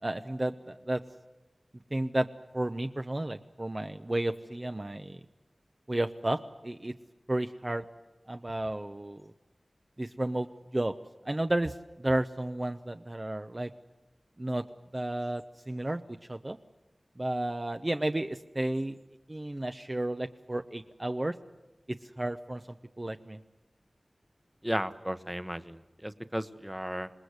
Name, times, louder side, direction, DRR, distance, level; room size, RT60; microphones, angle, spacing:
voice 1, 0.0-1.0 1.9-2.3 2.5-5.2 5.9-6.9 7.3-7.8 8.3-9.2 10.0-10.5 10.7-10.9 11.3-13.7 14.4-14.6 14.9-16.6 17.2-19.0 19.3-21.3 21.9-23.4, right 1 dB, 30° right, 7 dB, 0.7 m, -32 dB
voice 2, 24.6-27.1, equal, 10° right, 11 dB, 1.1 m, -34 dB
27.0 x 20.0 x 8.2 m, 1.1 s
wide cardioid pair, 65°, 0 cm